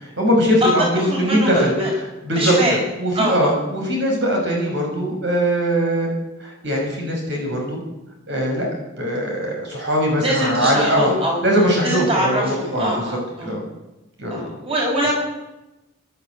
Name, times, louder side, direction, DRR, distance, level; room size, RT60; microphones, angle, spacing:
voice 1, 0.0-1.7 2.2-2.5 3.0-6.1 6.4-7.8 8.3-8.7 9.0-11.1 11.4-13.1 13.4-13.6 14.2-14.4, equal, 60° right, 0 dB, 6.4 m, -21 dB
voice 2, 0.6-1.9 2.3-2.8 3.1-3.5 10.2-11.4 11.8-13.5 14.3-15.2, equal, 30° right, -2 dB, 6.8 m, -23 dB
25.0 x 12.0 x 9.3 m, 0.99 s
head